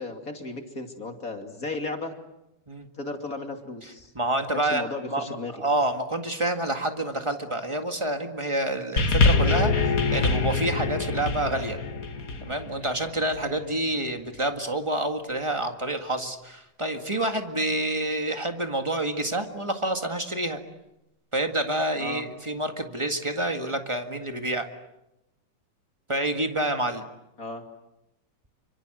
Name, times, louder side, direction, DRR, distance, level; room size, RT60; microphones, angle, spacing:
voice 1, 0.0-2.1 3.0-4.1 4.5-5.5 22.0-22.2 27.4-27.6, left 2 dB, 25° left, 4 dB, 2.7 m, -35 dB
voice 2, 4.1-11.8 12.4-20.6 21.3-24.7 26.1-27.0, right 1 dB, 20° right, 5 dB, 0.7 m, -28 dB
sound 1, 9.0-13.5 14.3-14.4, left 3 dB, 45° left, 1.1 m, -24 dB
29.5 x 25.5 x 7.8 m, 0.90 s
omnidirectional pair, 3.8 m